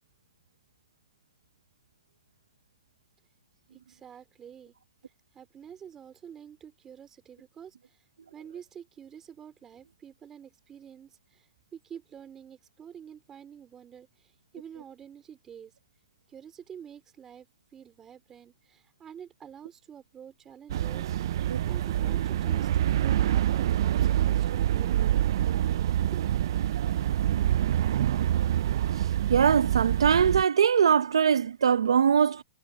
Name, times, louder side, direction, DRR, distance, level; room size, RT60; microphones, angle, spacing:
voice 1, 3.7-4.7 5.3-8.0 8.3-15.7 16.3-21.1 21.7-25.0 26.1-26.2, right 8 dB, 15° right, 4.1 m, -48 dB
sound 1, 20.7-30.4, right 11 dB, 60° right, 0.5 m, -26 dB
voice 2, 29.3-32.4, right 7 dB, 90° right, 1.0 m, -22 dB
hypercardioid pair, 145°, 3 cm